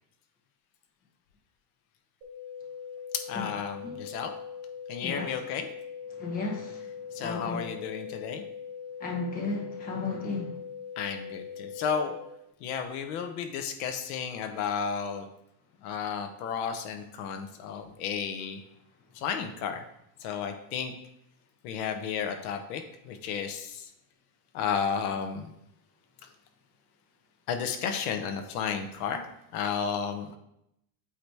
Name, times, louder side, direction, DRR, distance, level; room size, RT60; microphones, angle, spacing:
sound 1, 2.2-12.2, left 7 dB, 30° right, 1.8 m, -41 dB
voice 1, 3.3-4.3 4.9-5.7 7.1-8.4 11.0-12.1 12.6-15.3 15.8-18.6 19.1-19.8 20.2-20.9 21.6-23.9 24.5-25.5 27.5-29.2 29.5-30.4, left 7 dB, 70° left, 6 dB, 0.9 m, -33 dB
voice 2, 6.1-6.8 7.2-7.6 9.0-10.6, left 3 dB, 20° left, 0 dB, 0.8 m, -34 dB
8.4 x 3.0 x 4.6 m, 0.79 s
cardioid pair, 170°, 45 cm